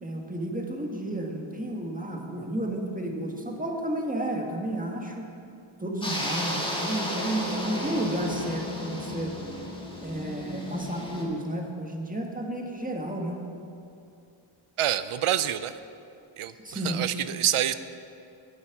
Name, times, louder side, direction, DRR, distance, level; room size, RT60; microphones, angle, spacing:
voice 1, 0.0-5.3 5.8-9.4 10.0-13.4 16.6-17.0, right 1 dB, 15° right, 1 dB, 1.7 m, -32 dB
sound 1, 6.0-11.2, left 1 dB, 10° left, 2.2 m, -33 dB
voice 2, 14.8-15.8 16.4-17.7, right 11 dB, 80° right, 14 dB, 0.6 m, -27 dB
11.0 x 8.6 x 5.9 m, 2.6 s
cardioid pair, 60°, 49 cm